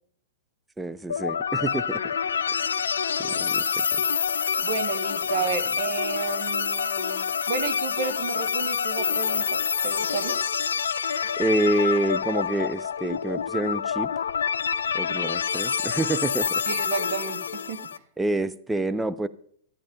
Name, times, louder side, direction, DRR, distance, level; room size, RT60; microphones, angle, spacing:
voice 1, 0.8-2.0 2.7-2.9 3.2-3.6 11.4-14.1 14.9-16.6 18.2-19.3, right 2 dB, 10° right, 0.5 m, -27 dB
sound 1, 1.1-18.0, left 7 dB, 70° left, 0.4 m, -27 dB
voice 2, 4.6-10.4 16.7-17.9, right 7 dB, 50° right, 1.1 m, -32 dB
12.5 x 8.7 x 5.1 m
figure-of-eight pair, 105°, 0 cm